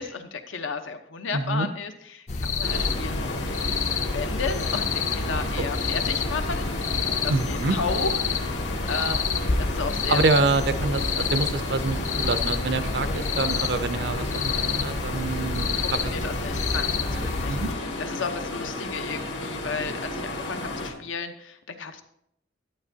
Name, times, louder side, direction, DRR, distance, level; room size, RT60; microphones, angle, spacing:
voice 1, 0.0-3.4 4.1-6.7 7.2-8.6 8.9-10.2 15.8-22.0, left 4 dB, 85° left, 7 dB, 0.8 m, -33 dB
voice 2, 1.3-1.7 5.6-5.7 7.3-7.8 10.1-16.0 17.5-17.7, right 3 dB, 55° right, 11 dB, 0.4 m, -26 dB
sound 1, 2.3-17.7, left 4 dB, 35° left, 0.4 m, -28 dB
sound 2, 2.6-20.9, left 2 dB, 70° left, 1.5 m, -33 dB
11.0 x 8.9 x 2.7 m, 0.73 s
head